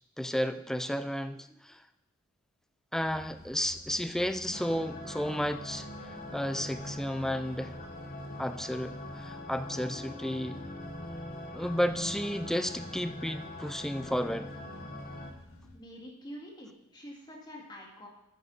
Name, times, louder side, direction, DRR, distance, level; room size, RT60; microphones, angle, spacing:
voice 1, 0.2-1.8 2.9-5.9 6.3-7.7 8.4-10.6 11.5-14.5, equal, ahead, 11 dB, 0.3 m, -32 dB
sound 1, 2.9-15.8, left 1 dB, 80° left, 1.7 m, -52 dB
sound 2, 4.5-15.3, left 1 dB, 40° left, 1.1 m, -42 dB
voice 2, 15.7-18.1, equal, 20° left, -1 dB, 1.9 m, -46 dB
9.5 x 9.1 x 3.9 m, 0.91 s
head